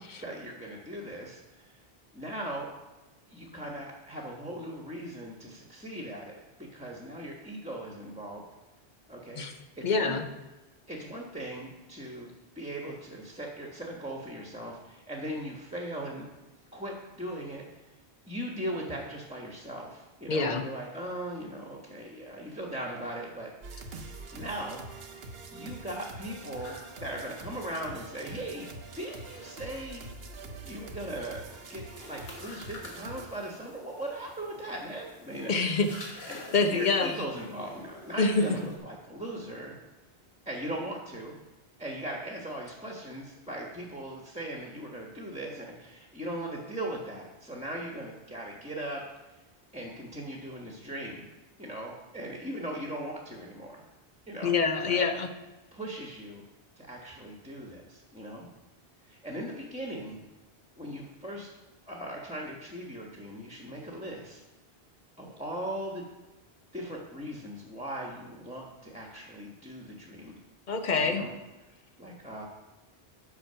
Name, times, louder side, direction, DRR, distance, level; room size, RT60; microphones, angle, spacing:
voice 1, 0.2-1.8 2.1-2.7 3.3-6.4 6.7-8.4 9.1-10.2 10.9-16.3 16.7-17.6 18.3-23.5 24.3-28.7 29.0-30.0 30.6-31.4 31.7-31.8 32.1-35.5 36.3-39.8 40.4-41.3 41.8-49.0 49.7-51.3 51.6-53.8 54.3-54.5 54.8-55.0 55.7-56.4 56.8-58.5 59.1-60.2 60.8-61.5 61.9-64.4 65.2-66.0 66.7-70.4 71.0-71.3 72.0-72.5, right 1 dB, 5° right, -1 dB, 1.1 m, -39 dB
voice 2, 9.8-10.3 20.3-20.7 35.5-36.2 36.5-37.1 38.2-38.5 54.4-55.3 70.7-71.2, left 4 dB, 50° left, 6 dB, 0.8 m, -26 dB
sound 1, 23.6-33.3, right 3 dB, 70° right, 1.1 m, -45 dB
sound 2, 26.5-38.8, left 1 dB, 70° left, 1.7 m, -49 dB
8.3 x 5.9 x 5.6 m, 1.1 s
omnidirectional pair, 1.1 m